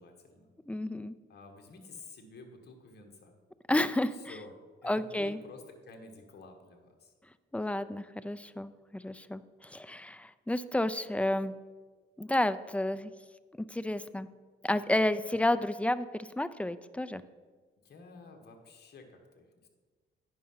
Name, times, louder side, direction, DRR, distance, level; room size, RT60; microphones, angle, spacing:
voice 1, 0.0-0.5 1.3-3.4 4.1-4.5 4.8-7.1 17.8-19.7, left 3 dB, 55° left, 3 dB, 1.5 m, -51 dB
voice 2, 0.7-1.1 3.7-4.3 4.8-5.4 7.5-11.5 12.2-13.1 13.6-14.3 14.6-17.2, left 1 dB, 5° left, 14 dB, 0.4 m, -31 dB
9.5 x 5.6 x 5.6 m, 1.4 s
cardioid pair, 90°, 20 cm